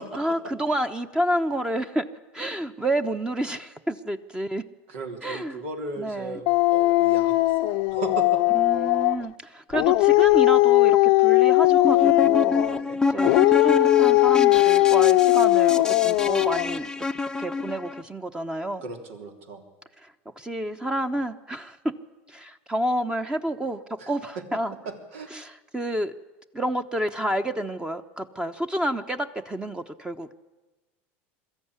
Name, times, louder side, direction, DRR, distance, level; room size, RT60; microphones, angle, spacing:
voice 1, 0.1-2.1 2.3-4.6 5.2-5.6 6.0-6.4 8.5-12.6 13.1-17.1 17.4-18.8 20.0-20.1 20.4-21.9 22.3-23.8 24.1-24.7 25.3-26.1 26.5-30.3, right 1 dB, 10° right, 8 dB, 1.0 m, -29 dB
voice 2, 4.9-7.5 7.9-8.4 12.6-13.0 18.8-19.6 24.0-24.1 24.9-25.3, right 3 dB, 80° right, 4 dB, 3.6 m, -36 dB
Dog, 6.5-9.3 9.7-12.8 13.2-16.8, left 19 dB, 65° left, 0.7 m, -19 dB
sound 1, 11.7-18.0, left 3 dB, 10° left, 0.7 m, -28 dB
22.0 x 14.0 x 9.7 m, 1.2 s
supercardioid pair, 110°, 7 cm